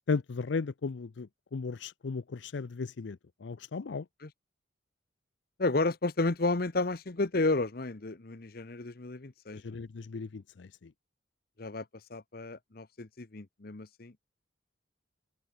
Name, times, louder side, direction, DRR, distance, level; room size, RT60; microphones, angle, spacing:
voice 1, 0.1-4.1 9.5-10.9, left 4 dB, 75° left, 0.5 m, -36 dB
voice 2, 5.6-9.8 11.6-11.8 12.1-14.1, left 2 dB, 50° left, 0.9 m, -32 dB
open air
head